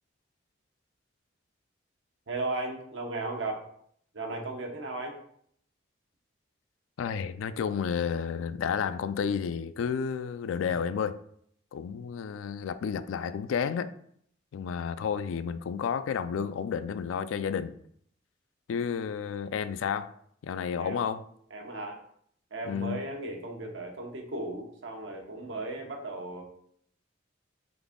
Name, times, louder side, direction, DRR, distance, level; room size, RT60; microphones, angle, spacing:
voice 1, 2.3-3.6 4.1-5.2 20.8-21.0 21.5-22.0 22.5-26.4, right 2 dB, 75° right, 0.9 m, -36 dB
voice 2, 7.0-11.2 11.7-13.9 14.5-17.8 18.7-20.1 20.4-21.2 22.7-23.0, left 7 dB, 90° left, 0.3 m, -31 dB
3.9 x 3.4 x 3.6 m
head